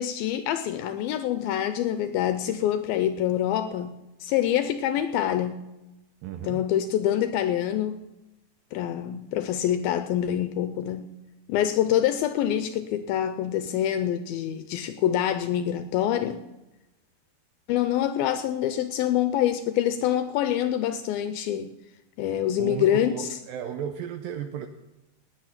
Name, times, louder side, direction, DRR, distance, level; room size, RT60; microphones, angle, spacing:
voice 1, 0.0-5.6 6.4-8.0 8.7-11.1 11.5-16.4 17.7-21.7 22.2-23.4, left 11 dB, 80° left, 10 dB, 2.2 m, -26 dB
voice 2, 6.2-6.6 22.6-24.7, right 9 dB, 85° right, 7 dB, 2.1 m, -34 dB
19.0 x 9.1 x 5.8 m, 0.99 s
omnidirectional pair, 4.8 m